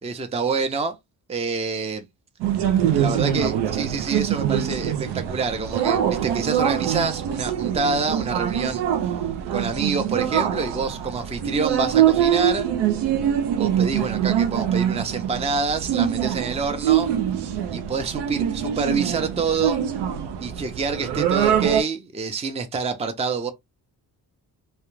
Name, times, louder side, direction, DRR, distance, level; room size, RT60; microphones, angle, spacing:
voice 1, 0.0-1.0 1.3-2.1 2.9-8.8 9.5-12.7 13.6-17.1 17.7-19.8 20.4-23.5, right 4 dB, 15° right, 0.5 m, -27 dB
sound 1, 2.4-21.8, right 9 dB, 90° right, 0.5 m, -24 dB
2.3 x 2.1 x 3.0 m
cardioid pair, 70°, 40 cm